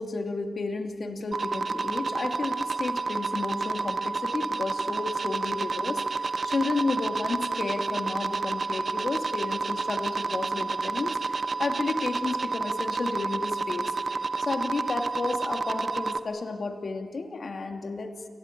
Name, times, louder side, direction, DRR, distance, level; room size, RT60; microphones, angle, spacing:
voice 1, 0.0-18.3, left 3 dB, 50° left, 5 dB, 2.5 m, -32 dB
sound 1, 1.3-16.2, right 3 dB, 50° right, 1.0 m, -30 dB
28.5 x 18.5 x 9.9 m, 2.2 s
wide cardioid pair, 95°, 0 cm